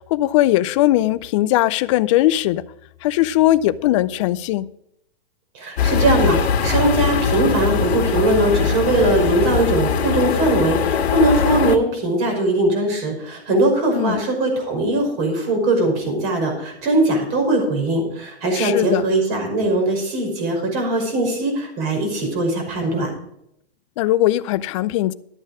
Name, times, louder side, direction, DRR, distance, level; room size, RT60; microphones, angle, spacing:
voice 1, 0.0-2.7 3.0-4.7 13.9-14.2 18.6-19.1 24.0-25.1, left 15 dB, 30° left, 0.4 m, -19 dB
voice 2, 5.5-23.1, right 2 dB, 40° right, 5.4 m, -20 dB
sound 1, 5.8-11.8, left 6 dB, 80° left, 1.8 m, -21 dB
12.5 x 8.6 x 4.9 m
hypercardioid pair, 145°, 32 cm